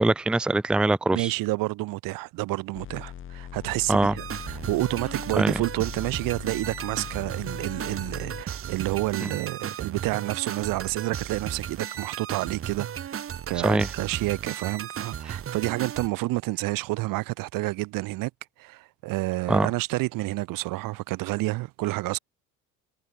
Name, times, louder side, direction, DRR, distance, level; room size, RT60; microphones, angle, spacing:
voice 1, 0.0-1.3 3.9-4.1 5.4-5.5 9.2-9.3 13.6-13.9 15.3-15.4 19.5-19.7, right 2 dB, 5° right, 0.5 m, -22 dB
voice 2, 1.1-13.2 13.5-18.3 18.6-22.2, right 20 dB, 85° right, 2.0 m, -29 dB
sound 1, 2.7-8.4, left 9 dB, 40° left, 0.9 m, -41 dB
sound 2, 4.2-16.1, right 9 dB, 40° right, 1.3 m, -35 dB
cardioid pair, 100°, 32 cm